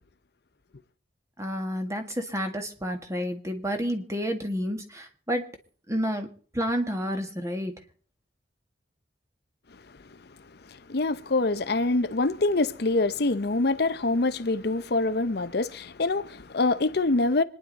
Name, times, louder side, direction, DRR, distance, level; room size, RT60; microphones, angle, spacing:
voice 1, 1.4-5.5 5.9-6.3 6.5-7.7, equal, 15° right, 1.7 m, -30 dB
voice 2, 10.7-17.4, left 2 dB, 60° left, 0.7 m, -25 dB
26.0 x 10.5 x 4.0 m
head